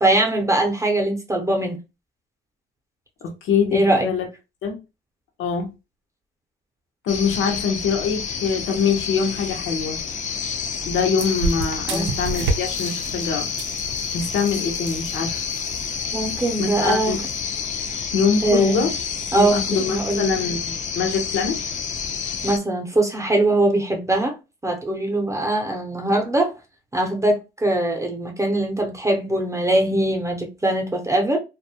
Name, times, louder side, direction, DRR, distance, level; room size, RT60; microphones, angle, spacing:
voice 1, 0.0-1.8 3.7-4.1 11.9-12.1 16.1-17.2 18.4-18.9 19.3-19.6 19.9-20.2 22.4-24.3 24.6-26.5 26.9-31.4, right 2 dB, 15° right, 0.6 m, -21 dB
voice 2, 3.2-4.3 4.6-4.8 5.4-5.7 7.0-10.0 10.9-13.5 14.1-15.4 16.6-17.2 18.1-18.9 19.3-21.6, left 5 dB, 90° left, 0.7 m, -23 dB
sound 1, 7.1-22.6, left 6 dB, 40° left, 0.4 m, -29 dB
sound 2, 8.7-17.4, right 3 dB, 90° right, 0.5 m, -33 dB
2.2 x 2.0 x 2.7 m
cardioid pair, 90°, 20 cm